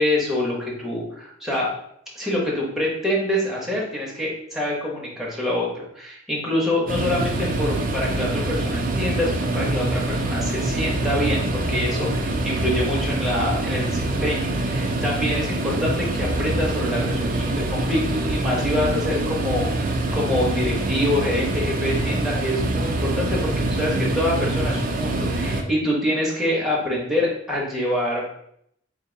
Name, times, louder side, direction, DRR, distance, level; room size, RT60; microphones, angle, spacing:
voice 1, 0.0-1.7 2.1-28.2, left 1 dB, ahead, -5 dB, 1.0 m, -26 dB
sound 1, 6.9-25.6, right 2 dB, 45° right, 0.4 m, -25 dB
3.7 x 2.7 x 3.9 m, 0.71 s
head